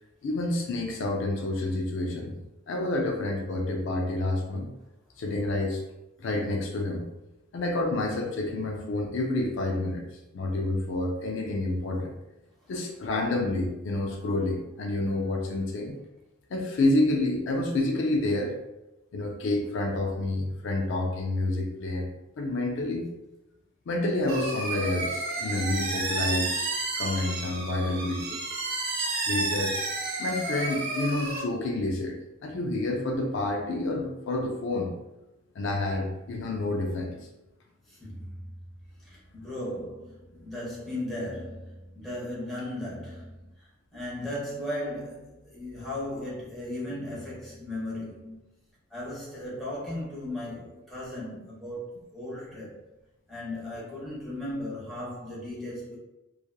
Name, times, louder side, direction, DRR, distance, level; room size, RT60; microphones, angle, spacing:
voice 1, 0.2-2.4 2.7-4.7 5.2-5.8 6.2-7.0 7.5-10.1 10.3-12.1 12.7-16.0 16.5-18.5 19.1-22.1 22.4-23.1 23.9-28.4 29.0-29.8 30.2-34.9 35.6-37.2, left 2 dB, 65° left, 1 dB, 0.4 m, -29 dB
sound 1, 24.3-31.4, right 2 dB, 55° right, 0.6 m, -31 dB
voice 2, 37.9-38.5 39.0-43.5 43.9-48.4 48.9-52.8 53.3-56.0, left 1 dB, ahead, -9 dB, 1.0 m, -36 dB
2.9 x 2.3 x 2.2 m, 0.97 s
head